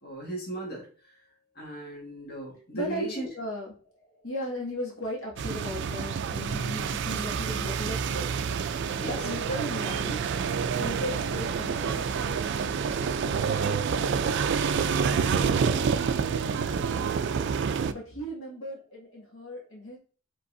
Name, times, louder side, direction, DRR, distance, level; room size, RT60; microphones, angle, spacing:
voice 1, 0.0-0.9 1.6-3.3 9.0-9.3, right 1 dB, 50° left, -4 dB, 1.6 m, -36 dB
voice 2, 2.7-3.7 4.2-8.3 9.0-10.2 10.8-14.4 14.8-17.2 17.8-20.0, equal, 75° left, -3 dB, 1.9 m, -38 dB
sound 1, 5.4-17.9, right 6 dB, 55° right, 0.3 m, -28 dB
5.2 x 3.9 x 2.6 m, 0.40 s
head